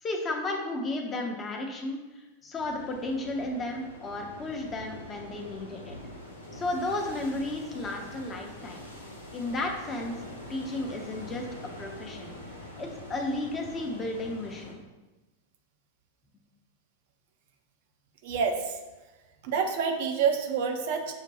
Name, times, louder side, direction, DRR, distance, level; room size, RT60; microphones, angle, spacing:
voice 1, 0.0-6.0 6.5-8.8 9.3-10.1 10.5-11.5 11.8-12.3 12.8-14.8, left 2 dB, 20° left, 2 dB, 0.7 m, -33 dB
sound 1, 2.5-14.7, left 1 dB, 80° left, 0.7 m, -44 dB
voice 2, 18.2-18.8 19.4-21.1, right 6 dB, 50° right, 4 dB, 0.5 m, -27 dB
6.5 x 2.2 x 2.8 m, 1.1 s
figure-of-eight pair, 90°, 0 cm